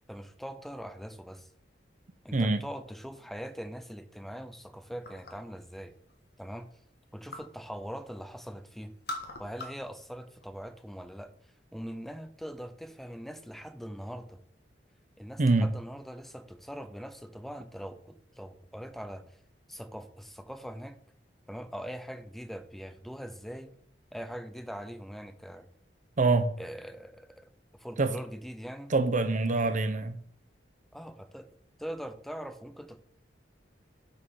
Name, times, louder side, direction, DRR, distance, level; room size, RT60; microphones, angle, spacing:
voice 1, 0.1-1.5 2.2-5.9 6.4-6.7 7.1-8.9 9.4-11.3 11.7-14.4 15.2-19.2 19.7-21.0 21.5-23.7 24.1-25.7 26.6-28.9 30.9-31.5 31.8-33.0, equal, ahead, 0.6 m, -42 dB
voice 2, 2.3-2.7 15.4-15.7 26.2-26.5 28.0-28.1 28.9-30.2, right 3 dB, 45° right, 0.6 m, -25 dB
sound 1, 5.0-5.6 6.0-7.6 7.9-8.5 8.8-9.9 10.2-11.0, left 2 dB, 60° left, 1.4 m, -43 dB
6.3 x 5.6 x 5.5 m
head